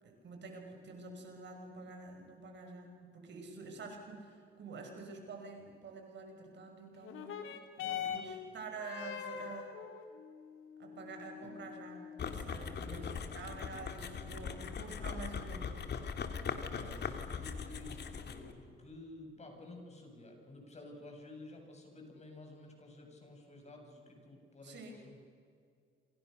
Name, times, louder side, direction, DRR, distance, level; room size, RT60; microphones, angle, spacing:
voice 1, 0.0-9.7 10.8-13.0 13.3-15.7 24.6-25.0, right 3 dB, 65° right, 3 dB, 6.3 m, -48 dB
sound 1, 7.0-16.0 16.8-16.9, left 8 dB, 85° left, 3.0 m, -45 dB
voice 2, 7.8-8.2 11.4-11.5 12.8-13.1 16.6-25.2, left 2 dB, 35° left, 2 dB, 8.0 m, -52 dB
sound 2, 12.2-18.5, left 6 dB, 55° left, 2.7 m, -40 dB
28.0 x 27.0 x 6.8 m, 2.2 s
cardioid pair, 90°, 20 cm